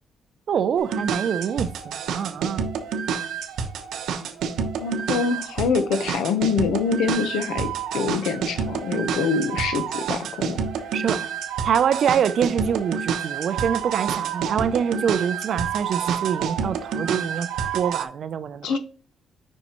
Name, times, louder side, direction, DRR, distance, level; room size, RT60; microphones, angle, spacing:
voice 1, 0.5-2.6 10.9-11.3 11.6-17.5 17.7-18.8, right 8 dB, 50° right, 0.4 m, -25 dB
sound 1, 0.8-18.0, right 7 dB, 80° right, 0.8 m, -28 dB
voice 2, 4.8-7.7 7.9-10.6 18.6-18.8, left 5 dB, 85° left, 0.9 m, -25 dB
7.1 x 5.4 x 3.0 m
cardioid pair, 170°, 0 cm